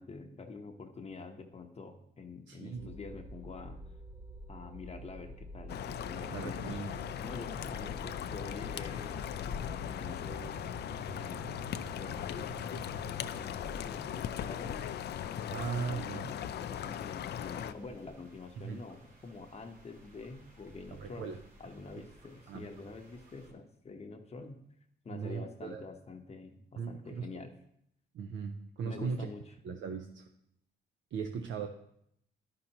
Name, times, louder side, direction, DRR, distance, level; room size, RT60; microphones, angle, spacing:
voice 1, 0.0-3.8 4.5-6.7 7.2-10.6 11.1-11.6 11.9-12.5 13.3-14.9 15.5-21.3 21.6-24.6 25.0-27.5 28.8-29.5, left 3 dB, 30° left, 4 dB, 0.8 m, -47 dB
voice 2, 2.5-2.9 6.3-7.0 15.5-16.3 18.6-18.8 21.0-21.4 22.5-22.7 25.1-25.8 26.8-27.5 28.1-29.3 29.6-30.3 31.1-31.7, right 6 dB, 70° right, 5 dB, 0.6 m, -38 dB
spacecraft background, 2.8-13.4, right 1 dB, 15° right, 0.7 m, -48 dB
sound 1, 5.7-17.7, left 10 dB, 55° left, 0.4 m, -39 dB
sound 2, 10.4-23.5, equal, 40° right, 2.2 m, -56 dB
11.5 x 5.5 x 2.9 m, 0.74 s
cardioid pair, 90°, 20 cm